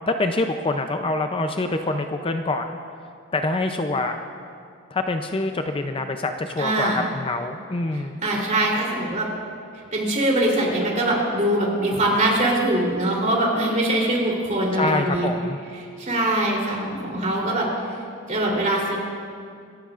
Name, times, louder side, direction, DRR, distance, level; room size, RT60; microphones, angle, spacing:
voice 1, 0.1-2.8 3.3-4.2 4.9-8.2 14.8-15.6, left 2 dB, 25° left, 6 dB, 0.5 m, -25 dB
voice 2, 6.6-7.0 8.2-9.3 9.9-15.3 16.0-17.7 18.3-19.0, right 1 dB, 40° right, -3 dB, 3.4 m, -22 dB
26.5 x 14.0 x 2.5 m, 2.3 s
head